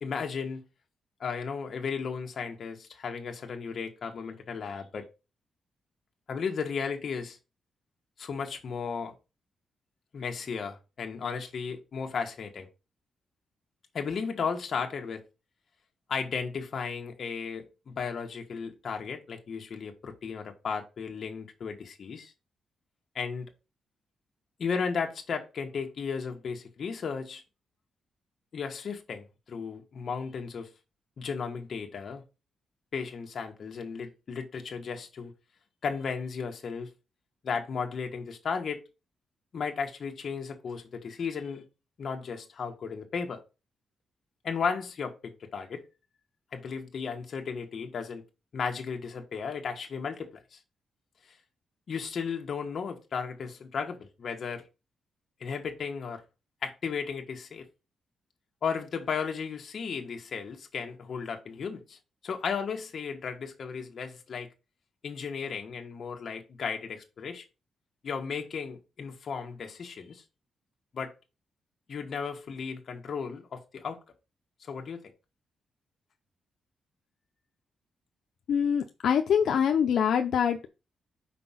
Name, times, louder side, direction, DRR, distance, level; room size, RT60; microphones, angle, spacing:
voice 1, 0.0-0.6 1.2-5.1 6.3-7.4 8.2-9.1 10.1-12.7 13.9-15.2 16.1-22.3 23.1-23.5 24.6-27.4 28.5-30.7 31.2-32.2 32.9-35.3 35.8-36.9 37.4-38.8 39.5-41.6 42.0-43.4 44.4-45.8 46.5-48.2 48.5-50.6 51.3-51.4 51.9-54.6 55.4-56.2 56.6-57.7 58.6-62.0 62.2-64.5 65.0-67.4 68.0-70.2 70.9-71.1 71.9-74.0 74.6-75.0, left 5 dB, 45° left, 1.5 m, -35 dB
voice 2, 78.5-80.7, left 8 dB, 70° left, 0.6 m, -24 dB
5.9 x 4.7 x 5.7 m
wide cardioid pair, 165°, 0 cm